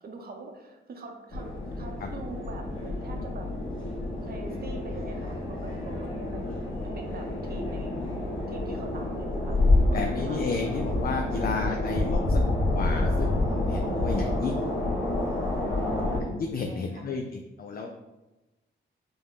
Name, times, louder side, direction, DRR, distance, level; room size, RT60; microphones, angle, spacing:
voice 1, 0.0-3.5 4.2-6.5 6.8-8.0 8.5-9.6 9.9-10.4 16.7-17.0, right 3 dB, 50° right, 3 dB, 0.7 m, -43 dB
sound 1, 1.3-16.2, left 2 dB, 80° left, 1.2 m, -28 dB
voice 2, 9.9-14.6 16.3-17.9, left 4 dB, 45° left, 3 dB, 0.4 m, -32 dB
5.1 x 2.2 x 3.7 m, 1.0 s
cardioid pair, 100°, 20 cm